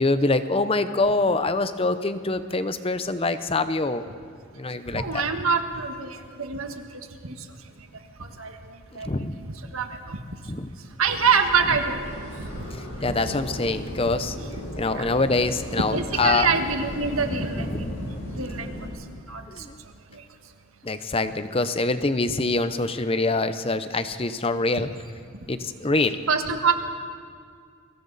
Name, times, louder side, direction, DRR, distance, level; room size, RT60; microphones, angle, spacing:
voice 1, 0.0-4.1 4.5-5.2 8.9-9.4 10.5-10.7 12.7-14.4 14.8-16.5 17.3-17.9 19.5-19.8 20.8-24.9 25.5-26.2, left 3 dB, 25° left, 11 dB, 0.7 m, -25 dB
voice 2, 4.9-6.7 7.2-7.3 8.2-8.6 9.0-9.1 9.4-9.5 9.7-10.2 11.0-12.6 14.9-15.1 15.9-18.1 18.4-18.7 19.3-19.4 20.1-20.2 26.3-26.7, right 5 dB, 80° right, 5 dB, 1.6 m, -25 dB
sound 1, 11.1-18.9, equal, 60° left, 6.7 m, -36 dB
29.5 x 22.5 x 4.1 m, 2.2 s
head